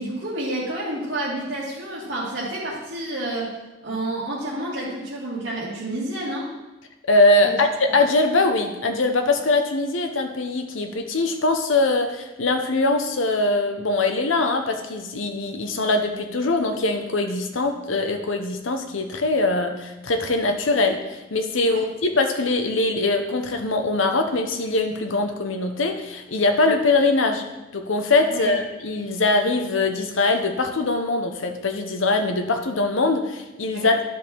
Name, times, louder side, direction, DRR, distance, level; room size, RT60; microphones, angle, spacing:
voice 1, 0.0-3.5 3.8-6.5 7.4-7.5 21.6-21.8 28.3-28.5 33.7-33.9, right 1 dB, 55° right, -11 dB, 2.4 m, -29 dB
voice 2, 7.1-27.4 27.7-34.0, left 2 dB, 85° left, 5 dB, 0.9 m, -22 dB
11.0 x 5.4 x 4.6 m, 1.0 s
head